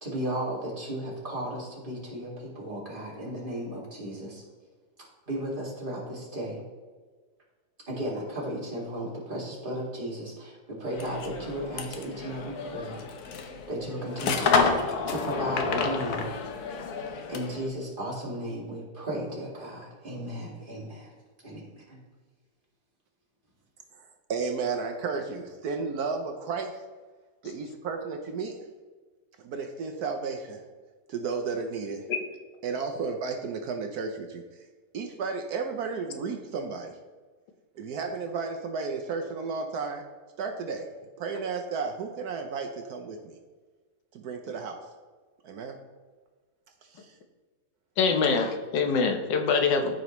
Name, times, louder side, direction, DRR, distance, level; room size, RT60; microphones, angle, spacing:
voice 1, 0.0-4.4 5.3-6.6 7.9-13.0 13.3-14.7 15.1-16.3 17.3-21.1 21.4-22.0, right 1 dB, 30° right, -4 dB, 2.2 m, -35 dB
sound 1, 10.9-17.7, left 4 dB, 65° left, 1.3 m, -30 dB
voice 2, 23.9-26.8 27.4-28.6 29.4-30.6 31.1-32.1 32.6-34.6 34.9-37.0 37.7-40.1 40.4-40.9 41.2-43.4 44.1-44.8 45.4-45.8 46.8-47.1, right 5 dB, 70° right, 5 dB, 1.1 m, -33 dB
voice 3, 48.0-50.0, left 5 dB, 90° left, 5 dB, 1.5 m, -24 dB
13.0 x 5.1 x 3.0 m, 1.4 s
omnidirectional pair, 1.9 m